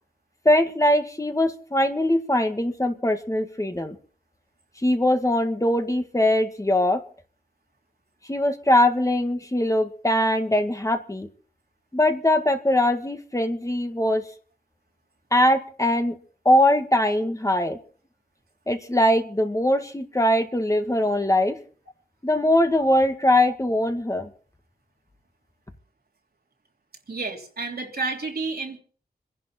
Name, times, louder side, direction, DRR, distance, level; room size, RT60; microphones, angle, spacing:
voice 1, 0.5-4.0 4.8-7.0 8.3-11.3 11.9-14.2 15.3-16.2 16.5-17.8 18.7-21.6 22.2-24.3, left 1 dB, 20° left, 6 dB, 1.7 m, -21 dB
voice 2, 27.1-28.8, right 3 dB, 80° right, 1 dB, 3.2 m, -30 dB
27.0 x 11.0 x 4.4 m, 0.43 s
wide cardioid pair, 85°, 16 cm